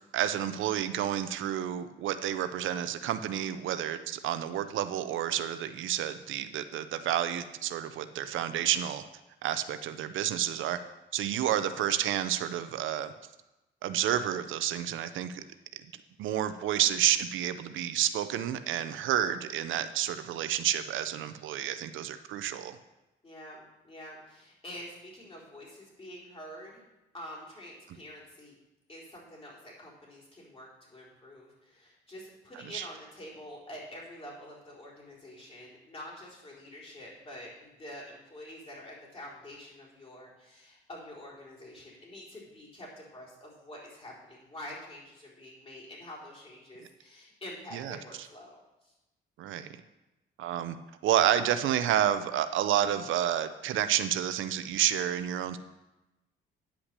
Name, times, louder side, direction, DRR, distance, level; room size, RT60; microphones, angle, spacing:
voice 1, 0.1-9.0 9.4-10.8 11.1-13.1 13.8-15.4 16.2-22.8 32.7-32.9 47.7-48.3 49.4-49.7 50.4-50.8 51.0-55.6, right 11 dB, 80° right, 11 dB, 0.6 m, -30 dB
voice 2, 23.2-26.8 27.1-28.5 28.9-48.9, left 1 dB, 30° left, -5 dB, 4.2 m, -47 dB
9.9 x 5.9 x 6.7 m, 1.0 s
cardioid pair, 90°, 20 cm